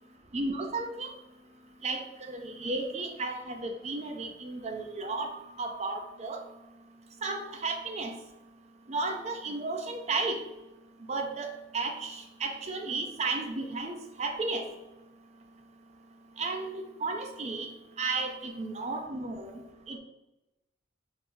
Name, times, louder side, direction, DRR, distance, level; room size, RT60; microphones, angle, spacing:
voice 1, 0.3-1.1 1.8-5.3 5.6-6.4 7.2-8.1 8.9-10.4 11.1-14.7 16.4-17.7 18.0-19.5 19.9-20.0, right 3 dB, 35° right, 4 dB, 0.5 m, -33 dB
4.7 x 3.4 x 2.6 m, 0.97 s
head